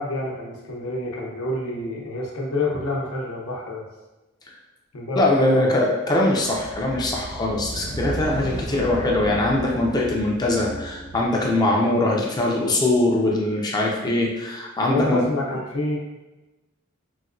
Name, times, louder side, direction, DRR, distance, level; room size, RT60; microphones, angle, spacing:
voice 1, 0.0-3.8 4.9-5.7 14.9-16.0, left 2 dB, 90° left, -2 dB, 0.7 m, -27 dB
voice 2, 5.2-15.2, left 1 dB, 20° left, -2 dB, 0.4 m, -22 dB
sound 1, 6.3-12.8, right 1 dB, 55° right, 0.8 m, -35 dB
4.0 x 2.1 x 2.4 m, 1.1 s
head